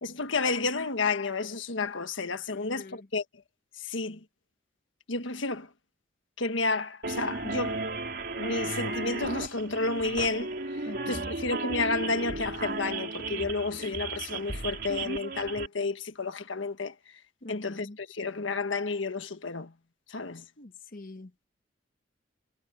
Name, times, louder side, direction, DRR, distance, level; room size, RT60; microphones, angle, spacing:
voice 1, 0.0-3.2 3.8-4.2 5.1-5.7 6.4-7.8 8.4-10.5 11.1-16.9 17.5-19.7 20.1-20.4, left 3 dB, 90° left, 1.5 m, -31 dB
voice 2, 2.5-3.1 10.8-11.3 17.4-18.0 20.6-21.4, left 2 dB, 50° left, 1.1 m, -44 dB
sound 1, 7.0-15.7, right 3 dB, 55° right, 3.1 m, -34 dB
head